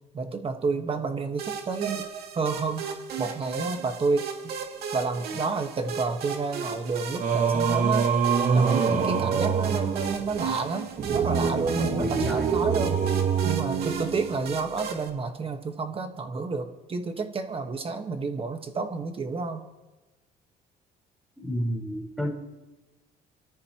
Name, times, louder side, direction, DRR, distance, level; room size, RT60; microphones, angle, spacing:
voice 1, 0.1-2.1 2.3-2.8 3.2-4.2 4.9-8.1 8.5-13.2 13.4-19.6, right 4 dB, 35° right, 6 dB, 1.5 m, -30 dB
sound 1, 1.4-15.1, right 5 dB, 70° right, 2.5 m, -36 dB
Singing, 7.2-14.6, right 6 dB, 50° right, 1.5 m, -25 dB
voice 2, 12.0-12.5 21.4-22.3, equal, ahead, -1 dB, 4.4 m, -30 dB
28.5 x 13.5 x 3.0 m, 1.1 s
cardioid pair, 110°, 17 cm